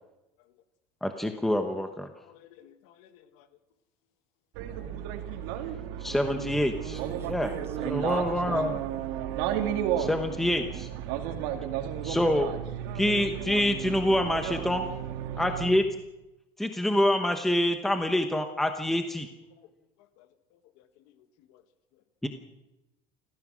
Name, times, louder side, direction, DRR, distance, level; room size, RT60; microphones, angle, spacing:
voice 1, 1.0-2.1 6.0-7.5 7.9-8.8 10.0-10.9 12.0-12.5 12.9-14.8 15.4-15.8 16.6-19.3 22.2-22.3, left 1 dB, ahead, 6 dB, 1.0 m, -26 dB
voice 2, 2.2-3.5 16.6-16.8 19.5-19.7 20.0-21.6 21.9-22.0, left 11 dB, 75° left, 10 dB, 1.6 m, -58 dB
sound 1, 4.6-15.8, right 10 dB, 85° right, 2.4 m, -33 dB
voice 3, 6.9-8.3 10.7-10.8, right 5 dB, 25° right, 6 dB, 2.0 m, -45 dB
29.0 x 15.0 x 6.2 m, 0.97 s
cardioid pair, 160°, 11 cm